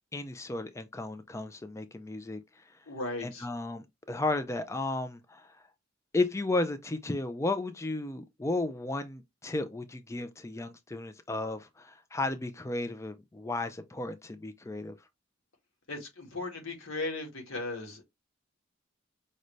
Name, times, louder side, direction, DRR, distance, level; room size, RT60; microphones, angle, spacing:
voice 1, 0.1-2.6 3.2-5.6 6.1-15.0, left 2 dB, 15° left, 0.4 m, -34 dB
voice 2, 2.9-3.5 15.9-18.0, left 2 dB, 85° left, 1.7 m, -37 dB
5.3 x 2.6 x 3.1 m
head